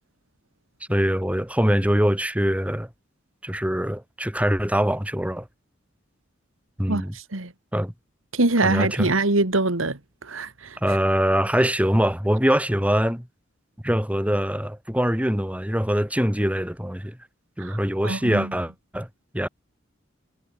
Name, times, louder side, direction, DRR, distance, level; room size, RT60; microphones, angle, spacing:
voice 1, 0.9-2.9 3.4-5.5 6.8-7.2 7.7-7.9 8.6-9.2 10.8-13.3 13.8-17.2 17.6-19.1 19.3-19.5, equal, 5° right, 6.9 m, -23 dB
voice 2, 8.3-10.0 10.3-10.8 17.6-17.8 18.0-18.5, right 2 dB, 85° right, 2.4 m, -23 dB
head